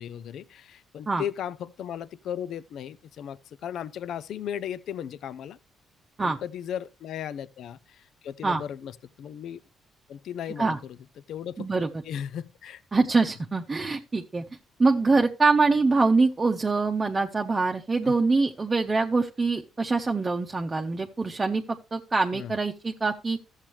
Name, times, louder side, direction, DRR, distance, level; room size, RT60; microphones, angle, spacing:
voice 1, 0.0-5.6 6.2-9.6 10.1-11.0 11.3-12.8 18.0-18.1 22.3-22.5, left 9 dB, 75° left, 0.5 m, -36 dB
voice 2, 11.6-11.9 12.9-14.4 14.8-21.6 21.9-23.4, right 3 dB, 25° right, 0.8 m, -24 dB
13.5 x 7.4 x 3.1 m
cardioid pair, 90°, 0 cm